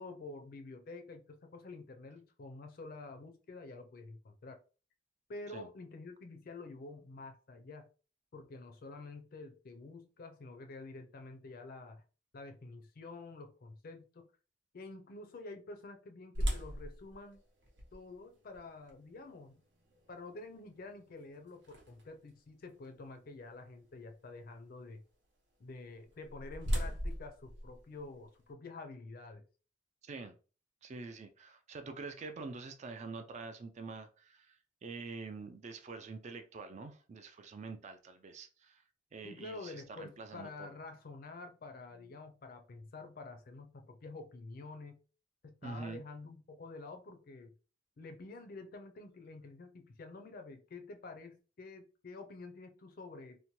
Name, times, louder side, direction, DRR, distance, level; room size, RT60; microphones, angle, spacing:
voice 1, 0.0-4.6 5.3-7.9 8.3-12.0 12.3-14.3 14.7-17.4 17.9-19.6 20.1-25.0 25.6-29.4 39.2-45.0 45.4-47.5 48.0-53.4, left 3 dB, 50° left, 0.4 m, -49 dB
sound 1, 16.3-22.3 22.8-22.9 23.5-23.8 25.8-28.5, equal, 70° right, 0.8 m, -40 dB
voice 2, 30.0-30.4 30.8-38.8 39.1-40.7 45.6-46.0, right 4 dB, 35° right, 0.3 m, -46 dB
2.7 x 2.1 x 2.9 m
head